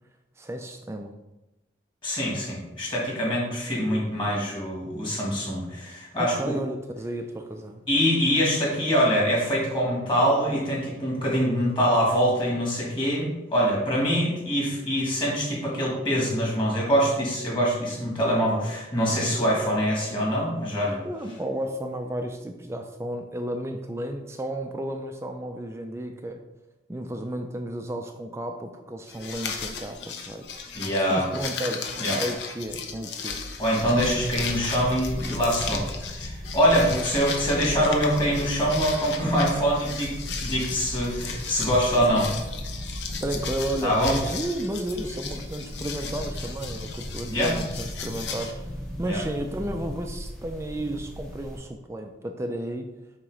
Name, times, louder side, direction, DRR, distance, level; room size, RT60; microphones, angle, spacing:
voice 1, 0.4-1.1 6.2-7.8 21.0-26.4 26.9-30.6 31.1-31.9 32.2-33.4 36.9-37.1 43.2-48.7 49.0-52.9, right 1 dB, 15° right, 5 dB, 0.3 m, -33 dB
voice 2, 2.0-6.6 7.9-21.0 30.7-31.3 32.0-32.2 33.6-35.8 36.1-40.1 40.4-42.3 43.8-44.1 47.3-47.5 49.0-49.2, equal, 25° left, -4 dB, 1.9 m, -24 dB
sound 1, 29.1-48.5, left 5 dB, 70° left, 0.7 m, -36 dB
sound 2, 33.7-51.6, equal, 5° left, 0.9 m, -37 dB
7.2 x 2.9 x 4.9 m, 1.0 s
head